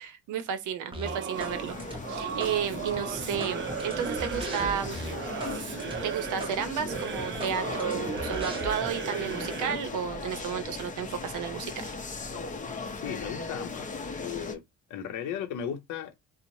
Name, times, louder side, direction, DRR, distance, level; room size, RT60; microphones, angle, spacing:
voice 1, 0.0-1.8 2.1-5.0 6.0-11.9, right 8 dB, 80° right, 0.6 m, -32 dB
sound 1, 0.9-1.5 1.8-2.5 2.9-5.5 5.8-6.0 6.4-6.5 6.9-8.9, right 1 dB, 15° right, 0.8 m, -38 dB
Singing / Musical instrument, 1.0-9.9, right 7 dB, 40° right, 0.4 m, -36 dB
sound 2, 1.3-14.6, left 3 dB, 25° left, 0.6 m, -38 dB
voice 2, 12.9-13.9 14.1-14.6 14.9-16.1, left 8 dB, 80° left, 0.7 m, -36 dB
3.0 x 2.1 x 2.6 m
cardioid pair, 90°, 30 cm